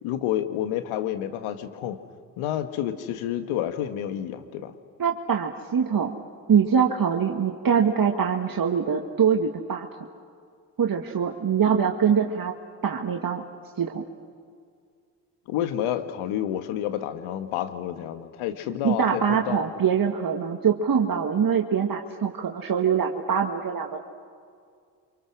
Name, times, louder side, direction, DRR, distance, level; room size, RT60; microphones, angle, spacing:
voice 1, 0.0-2.0 2.4-4.8 15.5-19.6, left 11 dB, 75° left, 9 dB, 1.8 m, -29 dB
voice 2, 5.0-6.2 6.5-9.9 10.8-12.5 12.8-13.4 13.8-14.0 18.8-24.0, right 7 dB, 40° right, 2 dB, 2.0 m, -23 dB
29.5 x 26.5 x 6.3 m, 2.2 s
hypercardioid pair, 45°, 50 cm